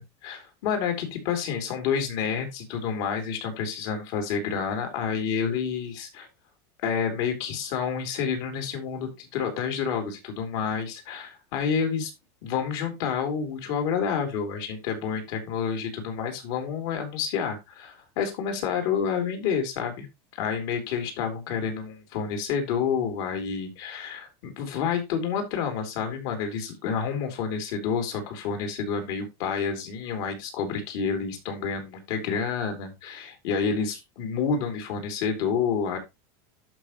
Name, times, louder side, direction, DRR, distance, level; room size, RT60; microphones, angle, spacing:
voice 1, 0.2-6.3 6.8-12.1 12.4-20.1 20.4-36.0, left 6 dB, 65° left, 4 dB, 3.5 m, -29 dB
12.0 x 5.3 x 3.1 m, 0.22 s
supercardioid pair, 140°, 13 cm